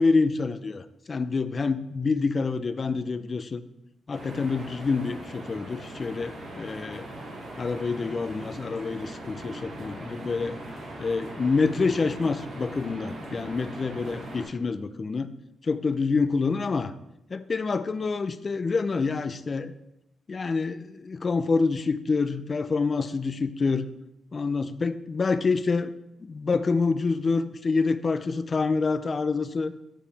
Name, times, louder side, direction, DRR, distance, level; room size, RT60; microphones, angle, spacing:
voice 1, 0.0-3.6 4.1-7.1 7.6-10.6 11.0-15.3 15.6-16.9 17.3-19.7 20.3-23.9 24.3-25.9 26.2-29.7, left 4 dB, 40° left, 12 dB, 0.4 m, -27 dB
sound 1, 4.1-14.4, right 1 dB, 75° right, 2.5 m, -40 dB
8.9 x 4.9 x 3.4 m, 0.87 s
cardioid pair, 90°, 0 cm